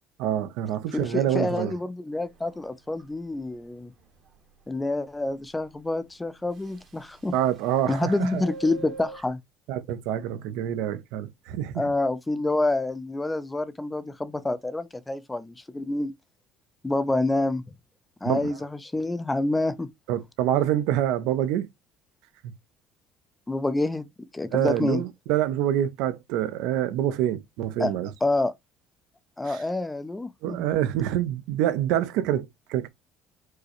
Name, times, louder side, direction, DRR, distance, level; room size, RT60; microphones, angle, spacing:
voice 1, 0.2-1.7 7.3-8.4 9.7-11.8 18.3-18.5 20.1-21.7 22.4-22.5 24.5-28.1 29.4-29.6 30.4-32.9, right 11 dB, 80° right, 0.5 m, -26 dB
voice 2, 0.9-3.9 4.7-7.3 7.9-9.4 11.8-16.1 16.8-17.6 18.2-18.6 18.8-19.9 23.5-24.1 24.3-25.0 27.8-27.9 28.2-28.5 29.4-30.6, left 2 dB, 10° left, 0.3 m, -27 dB
Subway metro underground, 2.2-2.6 3.0-3.1 3.4-3.5 4.0-4.1 6.5-7.2 7.5-9.2, right 1 dB, 45° right, 0.9 m, -41 dB
4.6 x 2.1 x 2.8 m
cardioid pair, 160°, 0 cm